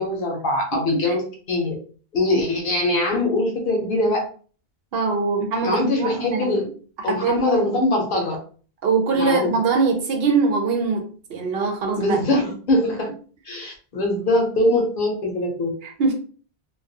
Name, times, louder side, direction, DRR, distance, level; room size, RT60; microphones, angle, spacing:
voice 1, 0.0-1.7 2.1-4.3 5.6-6.7 7.0-8.4 9.1-9.6 12.0-13.1 13.4-15.7, left 2 dB, 60° left, 0.8 m, -22 dB
voice 2, 4.9-6.6 7.1-7.7 8.8-12.2 15.8-16.1, right 4 dB, 70° right, 0.8 m, -22 dB
2.3 x 2.3 x 2.6 m
omnidirectional pair, 1.1 m